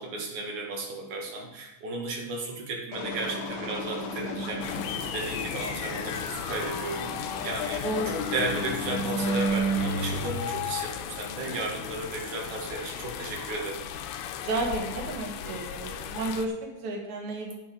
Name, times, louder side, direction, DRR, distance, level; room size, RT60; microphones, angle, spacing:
voice 1, 0.0-7.9 8.1-13.8, right 2 dB, 55° right, -1 dB, 2.2 m, -34 dB
sound 1, 2.9-10.3, right 1 dB, 70° left, 2.9 m, -32 dB
sound 2, 4.6-16.5, left 9 dB, 90° left, 3.3 m, -36 dB
voice 2, 14.4-17.5, right 2 dB, 85° right, 0 dB, 1.6 m, -32 dB
9.3 x 9.2 x 5.2 m, 0.96 s
omnidirectional pair, 5.9 m